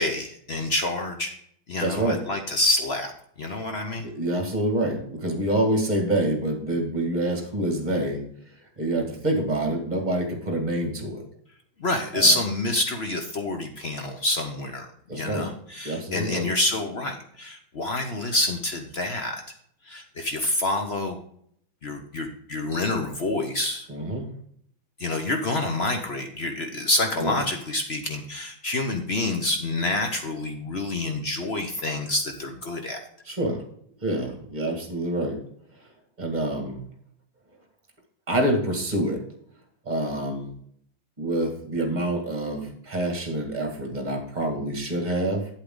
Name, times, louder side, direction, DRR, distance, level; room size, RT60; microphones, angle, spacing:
voice 1, 0.0-1.3 1.7-3.1 3.4-4.1 11.8-14.9 15.1-19.4 19.9-21.2 21.8-23.9 25.0-33.0, left 2 dB, 55° left, 5 dB, 0.7 m, -27 dB
voice 2, 1.8-2.2 4.0-8.2 8.8-11.3 12.1-12.3 15.1-15.5 15.8-16.5 23.9-24.3 27.2-27.4 33.2-33.6 34.0-35.4 36.2-36.8 38.3-39.2 39.9-40.5 41.2-45.5, right 1 dB, 20° right, 3 dB, 1.8 m, -26 dB
8.6 x 8.3 x 3.7 m, 0.66 s
omnidirectional pair, 2.3 m